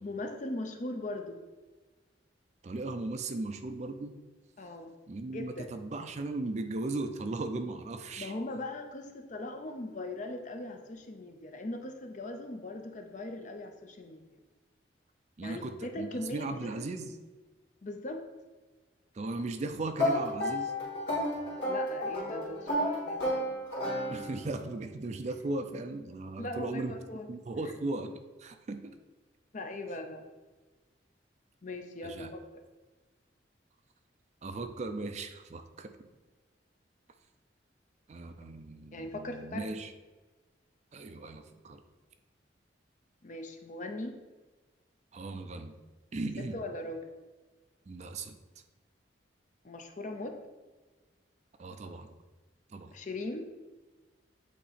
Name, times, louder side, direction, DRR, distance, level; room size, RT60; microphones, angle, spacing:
voice 1, 0.0-1.4 4.6-4.9 5.3-5.7 8.2-14.2 15.4-16.9 17.8-18.2 21.6-23.5 26.4-27.2 29.5-30.2 31.6-32.4 38.9-39.7 43.2-44.2 46.5-47.0 49.6-50.4 52.9-53.4, left 2 dB, 40° left, 5 dB, 0.6 m, -39 dB
voice 2, 2.6-4.2 5.1-8.3 15.4-17.2 19.1-20.8 24.1-26.9 27.3-28.1 28.4-28.9 32.0-32.3 34.4-36.1 38.1-39.9 40.9-41.8 45.1-45.8 46.1-46.6 47.9-48.4 51.6-52.2 52.7-53.0, right 2 dB, 40° right, 8 dB, 0.4 m, -37 dB
sound 1, 20.0-24.6, left 1 dB, 75° left, 2.0 m, -32 dB
8.3 x 2.8 x 4.1 m, 1.3 s
head